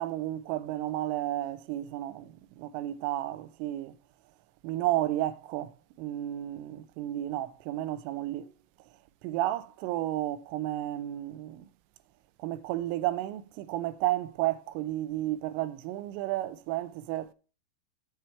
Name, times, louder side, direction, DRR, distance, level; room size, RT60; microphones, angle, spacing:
voice 1, 0.0-4.0 4.6-5.7 6.0-8.5 9.2-11.7 12.4-17.3, right 14 dB, 90° right, 3.2 m, -32 dB
8.3 x 7.6 x 4.5 m
omnidirectional pair, 5.6 m